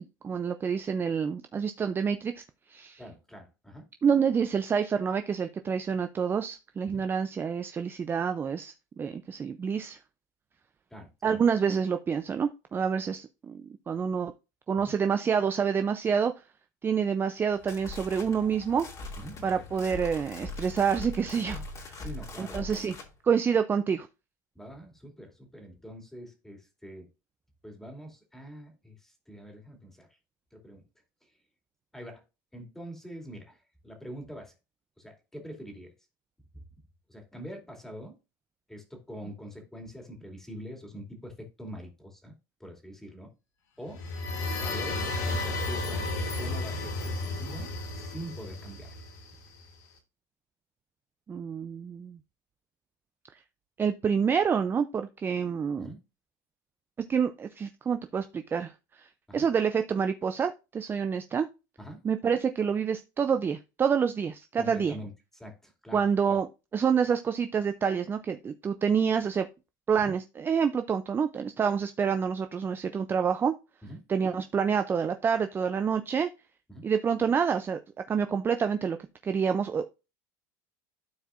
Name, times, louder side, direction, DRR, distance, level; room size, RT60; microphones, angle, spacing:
voice 1, 0.0-3.0 4.0-10.0 11.2-14.3 14.7-16.3 16.8-18.9 19.4-22.0 22.4-22.9 23.2-24.1 51.3-52.2 53.8-55.9 57.1-61.5 62.0-65.0 65.9-69.5 69.9-73.5 74.1-76.3 76.8-77.8 78.1-79.0 79.2-79.8, right 6 dB, 25° right, 9 dB, 0.5 m, -28 dB
voice 2, 3.0-3.8 6.9-7.0 10.9-11.4 14.8-14.9 19.2-19.5 22.0-23.0 24.5-27.1 27.6-30.1 30.5-30.8 31.9-32.2 32.5-34.5 35.0-35.9 36.5-36.6 37.1-38.2 38.7-42.3 42.6-43.3 43.8-44.0 44.5-46.1 46.4-49.0 55.8-56.0 59.3-59.5 61.8-62.0 64.6-66.4 70.0-70.1 73.8-74.0 76.7-76.8, equal, 5° left, 2 dB, 2.6 m, -44 dB
sound 1, 17.4-23.1, left 2 dB, 35° left, 2.3 m, -41 dB
sound 2, 43.9-49.6, left 2 dB, 85° left, 2.5 m, -33 dB
12.5 x 4.6 x 2.5 m, 0.28 s
supercardioid pair, 115°, 9 cm